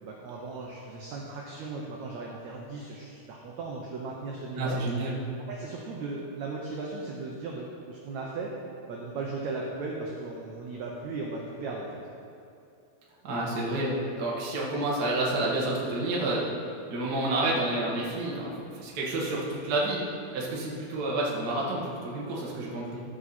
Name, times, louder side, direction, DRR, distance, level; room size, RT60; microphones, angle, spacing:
voice 1, 0.0-4.8 5.5-12.0 21.5-21.6, right 3 dB, 80° right, -2 dB, 1.6 m, -37 dB
voice 2, 4.6-5.2 13.2-16.5 16.9-20.0 20.3-23.0, right 2 dB, 50° right, -4 dB, 1.1 m, -29 dB
14.0 x 6.3 x 4.2 m, 2.6 s
omnidirectional pair, 4.4 m